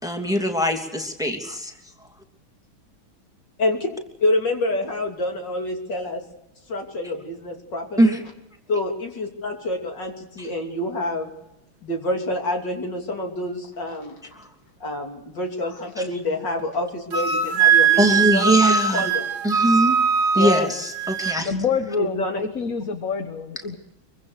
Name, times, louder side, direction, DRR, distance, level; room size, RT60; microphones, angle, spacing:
voice 1, 0.0-1.7 8.0-8.2 10.4-10.5 14.4-14.5 18.0-19.1 19.4-20.0 20.3-21.5, right 1 dB, ahead, 3 dB, 2.7 m, -21 dB
voice 2, 3.6-3.9 4.2-6.2 6.7-8.2 8.7-11.3 11.8-14.2 14.8-19.3 20.3-20.7 22.0-22.4, left 1 dB, 60° left, 2 dB, 3.7 m, -27 dB
Wind instrument woodwind instrument, 17.1-21.4, right 6 dB, 55° right, 1.9 m, -20 dB
voice 3, 21.4-23.8, left 5 dB, 45° left, 7 dB, 1.7 m, -26 dB
24.5 x 24.0 x 6.6 m, 0.94 s
omnidirectional pair, 2.2 m